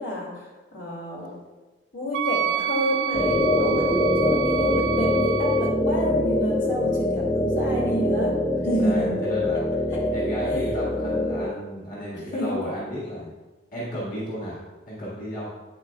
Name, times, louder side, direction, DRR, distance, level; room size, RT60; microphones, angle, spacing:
voice 1, 0.0-1.3 1.9-3.9 4.2-8.3 8.6-9.1 11.0-11.2 12.1-12.4, equal, 80° left, -4 dB, 2.6 m, -29 dB
Wind instrument woodwind instrument, 2.1-5.8, right 12 dB, 70° right, 0.3 m, -28 dB
sound 1, 3.1-11.5, left 1 dB, 25° left, 1.1 m, -24 dB
voice 2, 4.5-4.8 8.5-9.6 10.1-13.3 13.7-15.5, equal, 50° left, -7 dB, 1.9 m, -34 dB
8.8 x 7.7 x 2.4 m, 1.2 s
head